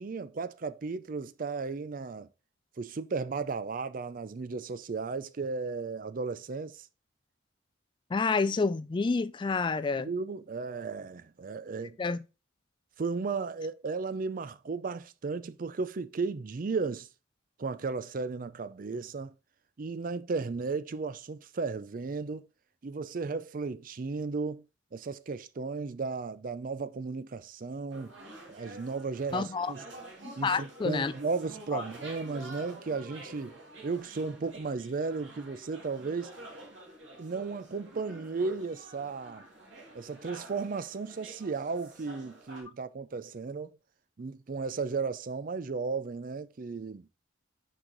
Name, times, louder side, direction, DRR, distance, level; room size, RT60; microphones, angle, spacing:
voice 1, 0.0-2.3 2.8-6.9 10.0-12.0 13.0-17.1 17.6-19.3 19.8-22.5 22.8-24.6 24.9-28.1 28.5-29.8 30.4-36.4 37.2-39.4 39.9-43.7 44.2-47.1, right 4 dB, 45° right, 0.4 m, -35 dB
voice 2, 8.1-10.1 12.0-12.2 29.3-29.7 30.2-31.1 31.7-31.8, left 4 dB, 25° left, 0.3 m, -29 dB
sound 1, 27.9-42.6, right 2 dB, 75° right, 2.0 m, -49 dB
6.2 x 4.8 x 3.9 m
head